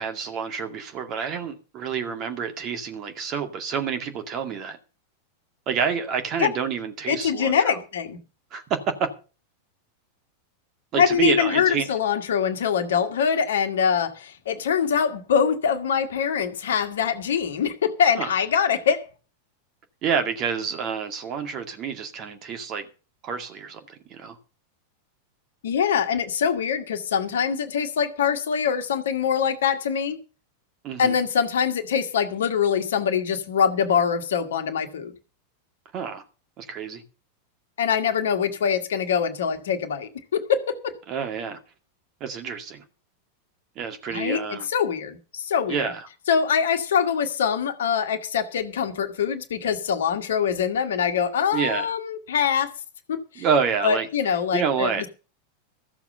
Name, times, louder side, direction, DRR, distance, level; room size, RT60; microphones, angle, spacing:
voice 1, 0.0-4.8 5.7-7.8 8.5-9.1 10.9-11.9 18.2-18.3 20.0-22.8 23.2-24.4 30.8-31.2 35.9-36.2 36.6-37.0 41.1-41.6 42.2-42.8 43.8-44.7 45.7-46.1 51.5-51.9 53.4-54.1 54.5-55.1, right 6 dB, 35° right, 2.2 m, -28 dB
voice 2, 7.1-8.2 10.9-19.0 25.6-30.2 31.0-35.1 37.8-41.0 44.1-45.9 46.3-52.7 53.1-53.4 53.8-55.1, left 7 dB, 60° left, 1.5 m, -24 dB
14.5 x 7.1 x 6.7 m
figure-of-eight pair, 90°, 0 cm